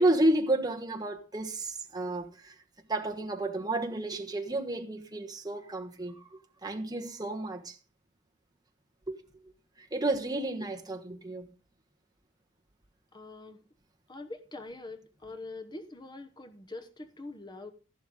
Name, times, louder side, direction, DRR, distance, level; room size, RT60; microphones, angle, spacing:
voice 1, 0.0-2.5 2.9-7.8 9.1-9.2 9.8-11.5, right 1 dB, 20° right, 1.4 m, -31 dB
voice 2, 13.1-13.6 14.1-17.7, left 2 dB, 20° left, 0.9 m, -44 dB
13.5 x 12.0 x 3.8 m
head